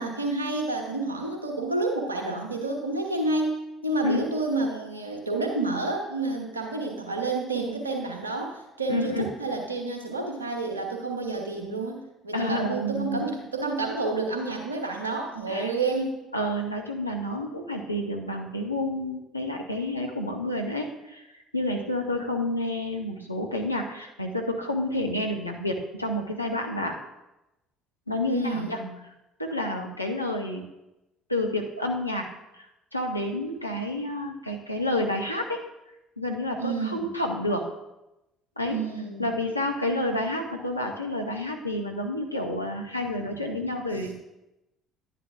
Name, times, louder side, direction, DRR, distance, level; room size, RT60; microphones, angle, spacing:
voice 1, 0.0-16.2 28.3-28.9 36.6-37.0 38.7-39.3, right 3 dB, 85° right, 3 dB, 1.0 m, -29 dB
voice 2, 8.9-9.3 12.3-13.3 15.5-15.7 16.3-27.0 28.1-28.8 29.4-30.6 31.3-32.2 32.5-32.7 32.9-35.6 36.2-37.6 38.6-38.8 39.2-44.1, left 1 dB, 90° left, 1 dB, 0.8 m, -29 dB
10.5 x 10.0 x 2.5 m, 0.95 s
figure-of-eight pair, 55°, 0 cm